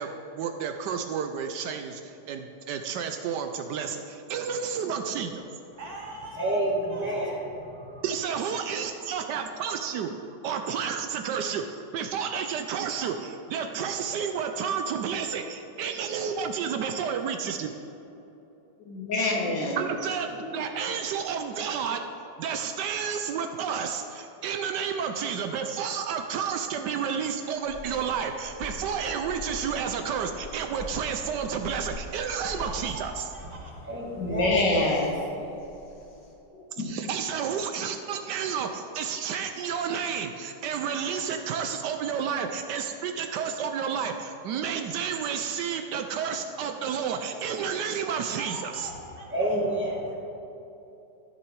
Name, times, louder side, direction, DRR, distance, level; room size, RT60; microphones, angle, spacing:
voice 1, 0.0-5.4 8.0-10.1 10.4-11.6 11.9-17.7 19.8-22.1 22.4-33.3 36.8-48.9, right 7 dB, 75° right, 6 dB, 1.2 m, -31 dB
voice 2, 5.8-7.3 32.4-33.7 48.3-49.6, right 2 dB, 55° right, -1 dB, 1.9 m, -42 dB
voice 3, 6.4-7.4 8.0-8.1 33.8-34.6 49.3-50.2, right 1 dB, 5° right, -5 dB, 1.9 m, -28 dB
voice 4, 18.8-19.8 20.5-20.6 34.2-35.2 36.5-36.6, left 2 dB, 75° left, -2 dB, 2.3 m, -26 dB
sound 1, 27.5-36.3, left 2 dB, 50° left, 1.9 m, -43 dB
14.0 x 6.3 x 4.6 m, 2.9 s
omnidirectional pair, 2.0 m